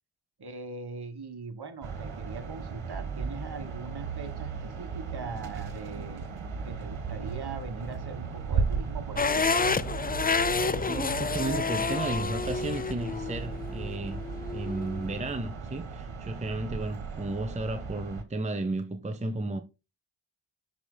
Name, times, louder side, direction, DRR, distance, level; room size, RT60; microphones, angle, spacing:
voice 1, 0.4-9.5, right 4 dB, 50° right, 1.6 m, -41 dB
sound 1, 1.8-18.2, right 5 dB, 65° right, 1.7 m, -36 dB
sound 2, 9.2-15.2, left 4 dB, 20° left, 0.5 m, -29 dB
voice 2, 10.8-14.2 14.5-19.6, right 2 dB, 15° right, 0.8 m, -33 dB
12.0 x 5.2 x 2.2 m
cardioid pair, 45°, 50 cm